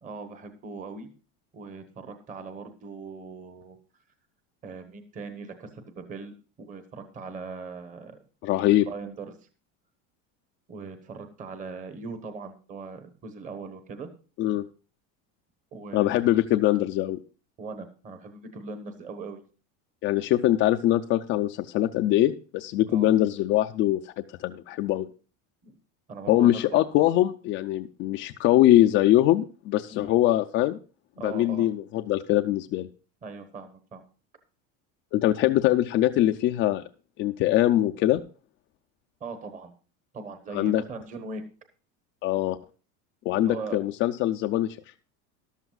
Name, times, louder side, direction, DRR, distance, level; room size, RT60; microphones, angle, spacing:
voice 1, 0.0-1.1 1.5-3.8 4.6-6.3 6.6-8.5 8.8-9.4 10.7-14.1 15.7-16.1 17.6-19.4 22.9-23.1 25.6-25.7 26.1-27.1 29.9-30.1 31.2-31.7 33.2-34.0 39.2-39.7 40.1-41.4 43.3-43.8, right 4 dB, 20° right, 8 dB, 1.1 m, -40 dB
voice 2, 8.4-8.9 14.4-14.6 15.9-17.2 20.0-25.1 26.3-30.8 31.2-32.9 35.1-36.8 37.2-38.2 40.5-40.8 42.2-42.6 43.3-44.8, left 14 dB, 35° left, 5 dB, 0.4 m, -23 dB
14.0 x 12.0 x 2.3 m, 0.35 s
cardioid pair, 170°, 35 cm